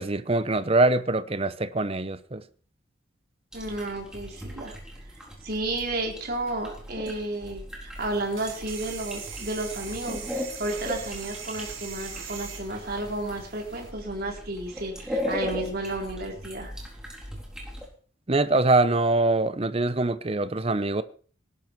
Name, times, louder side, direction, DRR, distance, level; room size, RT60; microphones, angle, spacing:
voice 1, 0.0-2.4 18.3-21.0, right 2 dB, 30° right, 0.7 m, -23 dB
sound 1, 3.5-17.9, left 1 dB, 5° right, 4.0 m, -38 dB
voice 2, 3.5-4.7 5.4-16.8, right 2 dB, 50° right, 4.0 m, -32 dB
sound 2, 8.0-13.9, right 7 dB, 80° right, 4.8 m, -41 dB
19.0 x 11.0 x 4.6 m
head